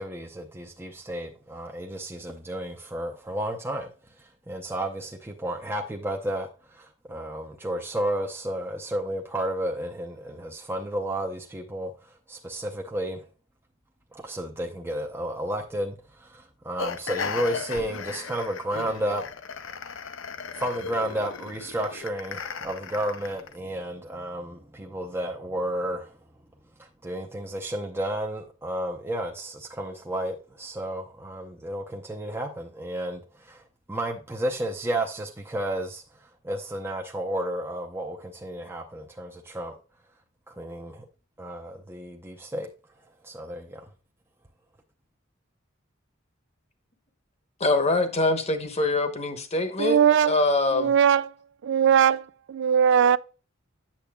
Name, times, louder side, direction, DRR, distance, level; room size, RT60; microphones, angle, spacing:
voice 1, 0.0-3.9 4.5-11.9 12.3-13.2 14.1-19.2 20.6-26.2 26.8-33.6 33.9-36.0 36.4-39.7 40.5-41.1 41.4-42.7 43.2-43.9, right 1 dB, 10° right, 0.7 m, -32 dB
sound 1, 16.8-23.6, left 5 dB, 65° left, 0.6 m, -36 dB
voice 2, 47.6-50.0 50.3-50.9, left 2 dB, 35° left, 1.0 m, -24 dB
voice 3, 49.8-50.4 50.7-51.3 51.6-53.2, right 8 dB, 60° right, 0.3 m, -20 dB
8.6 x 6.9 x 2.3 m
head